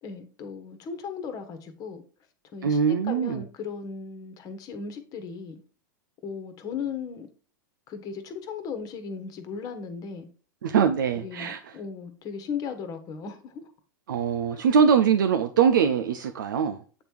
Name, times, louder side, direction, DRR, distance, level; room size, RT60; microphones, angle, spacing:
voice 1, 0.0-2.0 2.5-5.6 6.2-7.3 7.9-10.3 11.1-13.7 14.5-14.6, left 6 dB, 35° left, 1.3 m, -37 dB
voice 2, 2.6-3.4 10.6-11.7 14.1-16.8, right 7 dB, 75° right, 0.6 m, -22 dB
8.4 x 3.4 x 4.6 m
hypercardioid pair, 100°, 11 cm